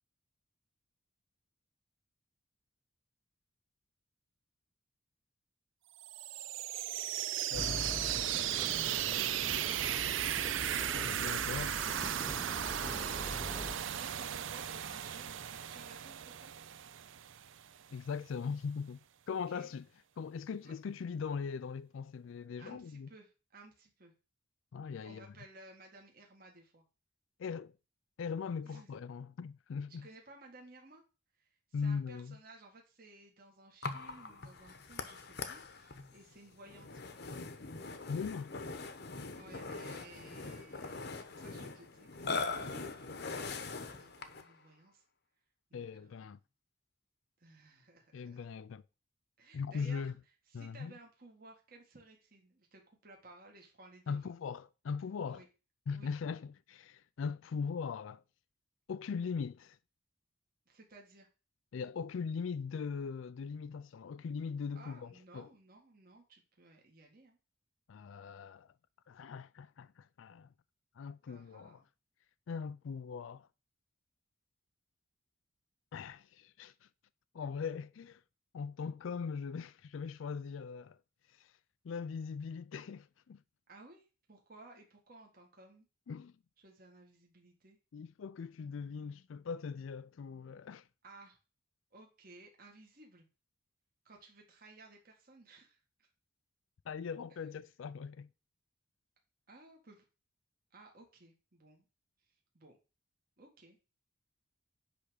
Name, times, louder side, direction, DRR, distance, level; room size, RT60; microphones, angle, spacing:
sound 1, 6.0-17.7, right 10 dB, 75° right, 0.5 m, -36 dB
voice 1, 7.5-8.0 10.9-11.8 17.9-19.0 19.3-19.9 20.2-23.1 24.7-25.3 27.4-27.7 28.2-30.1 31.7-32.4 38.1-38.5 45.7-46.4 48.1-48.8 49.5-50.1 50.5-50.9 54.1-55.4 55.9-58.2 58.9-59.8 61.7-65.5 67.9-68.7 69.1-70.5 71.0-71.8 72.5-73.5 75.9-76.9 77.3-78.2 78.5-81.0 81.3-81.5 81.8-83.4 86.1-86.3 87.9-90.9 96.9-98.3, left 5 dB, 75° left, 0.4 m, -40 dB
sound 2, 7.5-13.8, left 1 dB, 10° left, 0.5 m, -44 dB
voice 2, 8.8-10.5 13.6-16.5 19.3-19.7 20.6-20.7 22.6-24.1 25.0-26.8 28.6-28.9 29.9-31.0 31.3-37.0 39.4-45.0 45.7-46.5 47.4-48.5 49.4-50.1 50.5-54.3 55.3-55.5 55.9-56.1 60.7-61.3 64.7-67.4 71.3-71.9 83.7-85.9 86.6-87.8 91.0-91.4 91.9-93.3 94.0-96.1 99.5-100.1 100.7-101.9 102.2-102.8 103.4-103.8, right 2 dB, 45° right, 1.8 m, -57 dB
Burping eructation, 33.8-44.5, left 4 dB, 55° left, 0.9 m, -42 dB
10.0 x 3.5 x 6.4 m
head